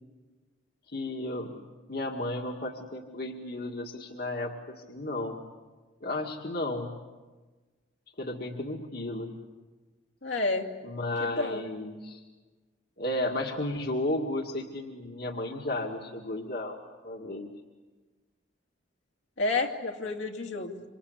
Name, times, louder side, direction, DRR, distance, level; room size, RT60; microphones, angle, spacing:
voice 1, 0.9-1.6 1.9-5.4 6.0-6.9 8.2-9.3 10.8-12.2 13.0-16.8 17.0-17.5, left 1 dB, 55° left, 1 dB, 2.0 m, -33 dB
voice 2, 10.2-10.7 11.2-11.6 19.4-20.8, left 3 dB, 75° left, 2 dB, 2.5 m, -30 dB
26.5 x 26.0 x 8.3 m, 1.3 s
head